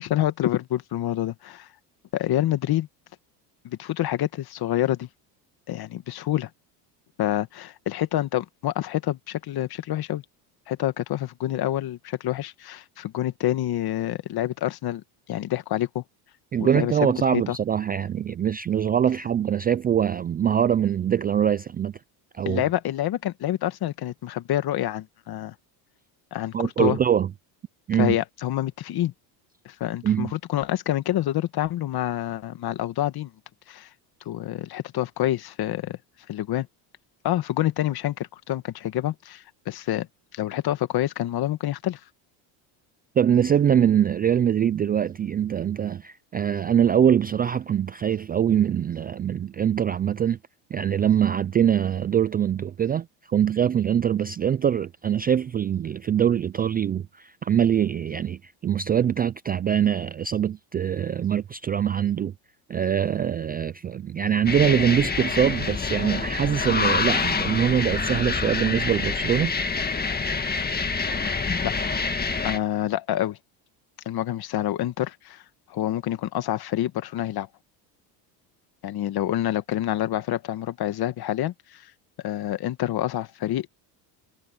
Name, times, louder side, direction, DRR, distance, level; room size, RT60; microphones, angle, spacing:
voice 1, 0.0-1.7 2.1-2.9 3.6-5.1 5.7-6.5 7.2-10.2 10.7-15.0 15.3-16.0 16.6-17.6 22.5-25.5 26.3-27.0 28.0-29.1 29.7-33.3 33.7-33.9 34.3-36.0 36.3-36.7 37.2-40.1 40.3-42.0 71.6-71.7 72.4-73.4 74.1-75.4 75.7-77.5 78.8-81.9 82.2-83.7, left 13 dB, 50° left, 1.8 m, -27 dB
voice 2, 16.5-21.9 22.4-22.6 26.5-27.3 27.9-28.2 30.0-30.3 43.2-50.4 50.7-62.3 62.7-69.5, right 9 dB, 20° right, 0.3 m, -23 dB
sound 1, 64.5-72.6, left 4 dB, 20° left, 1.9 m, -26 dB
supercardioid pair, 105°, 48 cm